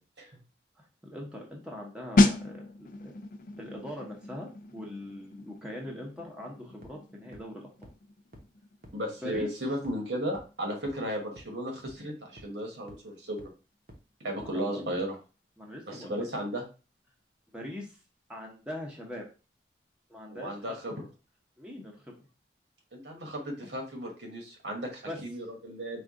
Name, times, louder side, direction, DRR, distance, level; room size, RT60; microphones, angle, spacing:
voice 1, 0.8-3.1 3.6-7.9 9.2-9.5 14.4-15.0 15.6-16.2 17.5-18.0 18.3-19.3 20.1-20.8 21.6-22.1 25.1-25.2, left 1 dB, 5° right, -2 dB, 0.9 m, -41 dB
sound 1, 2.2-12.7 12.9-13.2, left 2 dB, 50° left, 0.4 m, -32 dB
sound 2, 6.8-6.9 7.3-7.4 7.8-7.9 8.3-8.4 8.8-8.9 9.3-9.4 9.8-9.9 10.3-10.4 10.8-10.9 11.4-11.5 11.9-12.0 12.4-12.5 12.9-13.0 13.4-13.5 13.9-14.0 14.4-14.5, equal, 55° right, 0.9 m, -49 dB
voice 2, 8.9-13.5 14.2-15.1 15.9-16.6 20.3-21.0 22.9-26.0, equal, 85° right, 2 dB, 1.4 m, -35 dB
4.5 x 2.5 x 3.7 m, 0.33 s
head